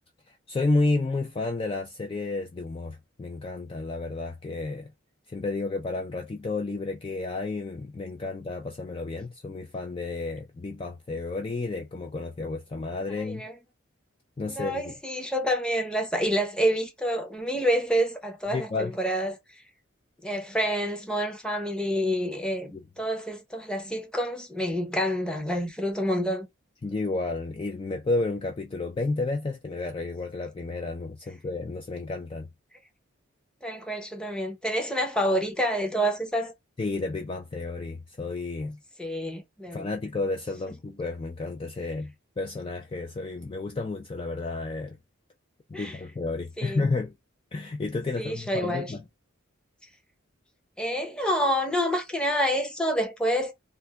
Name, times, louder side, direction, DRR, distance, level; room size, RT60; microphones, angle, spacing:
voice 1, 0.3-4.9 5.3-13.5 14.4-14.9 18.5-19.0 22.7-22.8 26.8-32.5 36.8-38.8 39.7-45.0 45.7-47.2 47.5-49.0, left 3 dB, 25° left, 0.3 m, -31 dB
voice 2, 13.1-13.5 14.5-19.4 20.2-26.5 33.6-36.5 39.0-39.9 45.7-46.0 46.6-46.9 48.2-48.9 50.8-53.5, equal, 5° left, 0.7 m, -28 dB
3.3 x 2.1 x 3.3 m
head